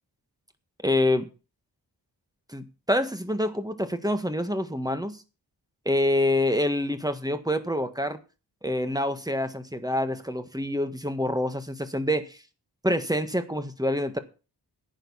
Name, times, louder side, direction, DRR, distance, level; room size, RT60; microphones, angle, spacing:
voice 1, 0.8-1.3 2.5-5.2 5.8-8.2 8.6-12.4 12.8-14.2, left 1 dB, 10° right, 1.5 m, -26 dB
11.0 x 9.2 x 5.7 m
wide cardioid pair, 70°, 41 cm